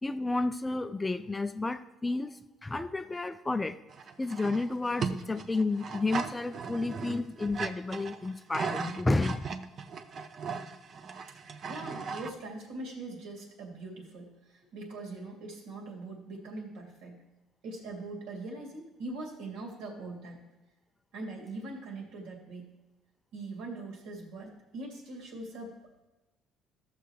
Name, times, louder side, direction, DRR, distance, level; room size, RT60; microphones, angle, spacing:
voice 1, 0.0-3.8 4.2-9.5, left 2 dB, 10° left, 11 dB, 0.4 m, -31 dB
sound 1, 3.9-12.3, right 5 dB, 40° right, 0.6 m, -37 dB
voice 2, 11.6-17.2 17.6-20.4 21.1-22.7 23.3-25.7, right 2 dB, 80° right, 0 dB, 2.8 m, -42 dB
14.5 x 6.8 x 3.2 m, 1.1 s
cardioid pair, 140°, 0 cm